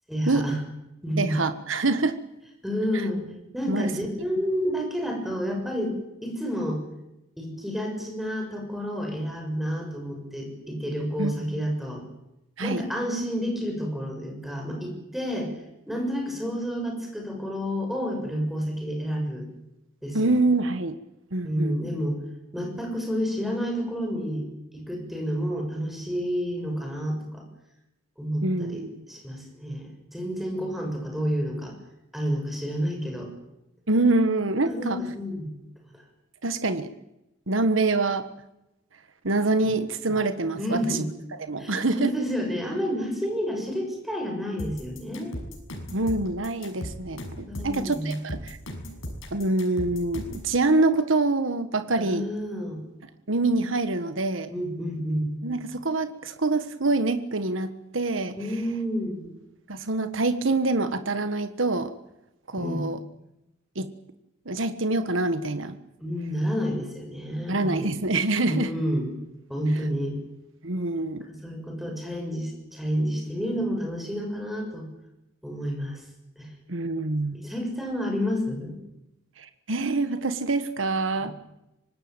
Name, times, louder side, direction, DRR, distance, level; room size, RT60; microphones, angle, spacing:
voice 1, 0.1-0.6 1.0-1.3 2.6-3.3 3.5-5.9 6.2-6.8 7.4-12.0 12.6-15.5 15.9-19.4 20.0-20.4 21.4-22.2 22.5-24.4 24.7-27.4 28.2-31.7 32.1-33.3 34.6-35.5 40.6-41.1 41.6-45.3 47.5-48.2 52.0-52.8 54.5-55.3 58.3-59.3 62.6-62.9 66.0-67.9 68.5-69.1 69.5-70.2 71.3-74.9 75.4-76.0 76.4-76.5 77.3-78.8, equal, ahead, 2 dB, 6.8 m, -30 dB
voice 2, 1.2-2.2 2.9-3.1 3.7-3.9 11.2-11.3 12.6-12.9 20.1-21.0 21.3-21.8 28.4-29.0 33.9-35.0 36.4-36.9 37.5-38.3 39.2-41.0 41.3-42.1 45.9-47.2 47.6-48.6 49.3-52.2 53.3-54.5 55.4-58.4 59.7-61.9 62.5-63.0 63.7-63.9 64.4-65.8 67.5-68.7 70.6-71.3 76.7-77.4 79.4-81.3, right 2 dB, 70° right, 10 dB, 1.5 m, -25 dB
sound 1, 44.6-50.5, equal, 80° left, 6.3 m, -37 dB
25.0 x 19.5 x 9.0 m, 0.89 s
head